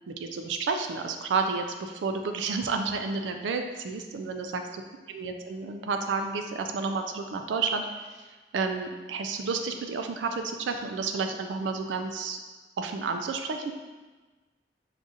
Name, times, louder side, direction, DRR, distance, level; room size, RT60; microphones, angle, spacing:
voice 1, 0.1-4.5 5.1-8.3 8.5-12.4 12.8-13.7, right 4 dB, 90° right, 5 dB, 0.3 m, -31 dB
6.2 x 2.5 x 2.6 m, 1.3 s
head